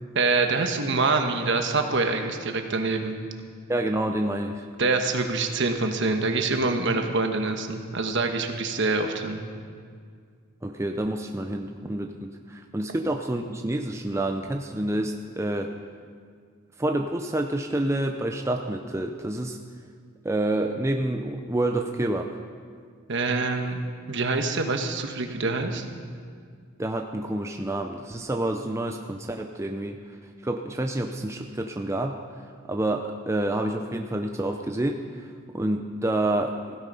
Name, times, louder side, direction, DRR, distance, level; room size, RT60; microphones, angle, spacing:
voice 1, 0.1-3.2 4.8-9.4 23.1-23.8 24.1-25.9, right 3 dB, 55° right, 5 dB, 1.2 m, -25 dB
voice 2, 3.7-4.7 10.6-15.7 16.8-19.6 20.2-22.3 26.8-30.0 30.4-32.2 32.7-35.0 35.5-36.8, right 1 dB, 15° right, 3 dB, 0.5 m, -28 dB
16.0 x 12.5 x 5.5 m, 2.1 s
head